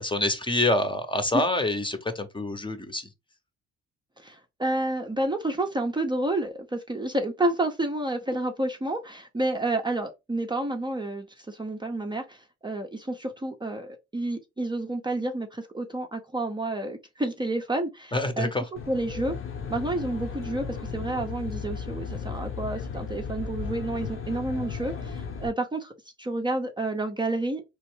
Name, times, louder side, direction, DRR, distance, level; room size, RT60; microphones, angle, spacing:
voice 1, 0.0-3.1 18.1-18.6, left 2 dB, 15° left, 0.9 m, -26 dB
voice 2, 4.2-18.5 18.9-19.4 19.7-25.9 26.2-27.6, right 2 dB, 15° right, 0.7 m, -30 dB
Aircraft, 18.8-25.5, left 6 dB, 45° left, 1.0 m, -35 dB
4.1 x 3.1 x 3.2 m
cardioid pair, 90°, 30 cm